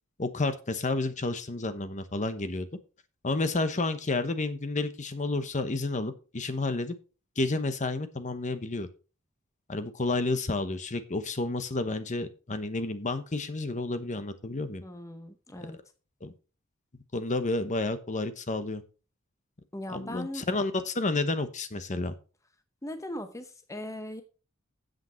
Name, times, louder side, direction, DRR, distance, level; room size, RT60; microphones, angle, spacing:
voice 1, 0.2-2.7 3.2-6.9 7.4-8.9 9.7-14.8 15.6-15.7 16.2-16.3 17.1-18.8 19.9-22.2, left 2 dB, 35° left, 10 dB, 1.0 m, -30 dB
voice 2, 14.8-15.8 19.7-20.4 22.8-24.2, left 1 dB, 15° left, 7 dB, 0.8 m, -39 dB
9.0 x 7.9 x 4.4 m, 0.35 s
head